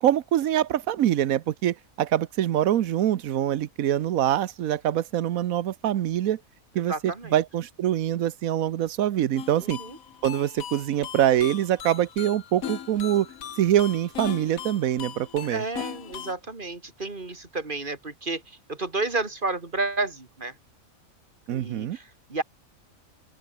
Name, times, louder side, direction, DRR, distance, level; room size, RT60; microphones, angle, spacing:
voice 1, 0.0-6.4 6.7-9.8 10.2-13.3 13.6-15.6 21.5-22.0, right 11 dB, 85° right, 1.2 m, -24 dB
voice 2, 6.9-7.3 9.6-10.0 15.5-18.4 18.7-20.5 21.5-22.4, right 3 dB, 35° right, 2.9 m, -31 dB
sound 1, 9.4-16.3, left 9 dB, 85° left, 1.5 m, -39 dB
open air
omnidirectional pair, 1.4 m